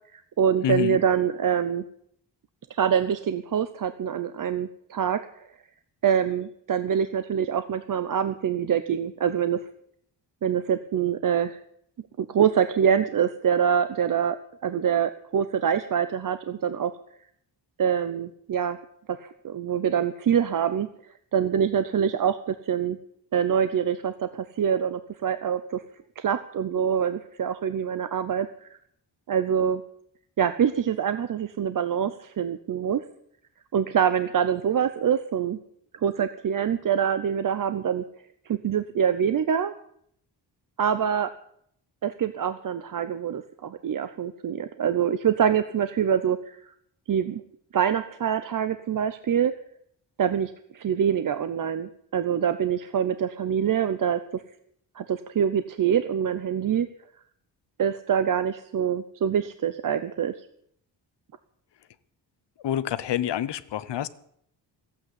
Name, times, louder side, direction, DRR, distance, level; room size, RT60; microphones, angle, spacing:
voice 1, 0.1-1.8 2.7-5.2 6.0-9.6 10.4-11.6 12.2-14.4 14.6-16.9 17.8-18.8 19.1-20.9 21.3-23.0 23.3-25.8 26.2-28.8 29.3-29.8 30.4-33.0 33.7-35.6 36.0-38.0 38.5-39.7 40.8-41.3 42.0-46.7 47.1-47.4 47.7-49.5 50.2-54.4 55.0-56.9 57.8-60.3, right 8 dB, 50° right, 0.7 m, -25 dB
voice 2, 0.6-1.0 62.6-64.1, left 11 dB, 70° left, 1.0 m, -27 dB
15.5 x 8.7 x 9.8 m
wide cardioid pair, 145°, 43 cm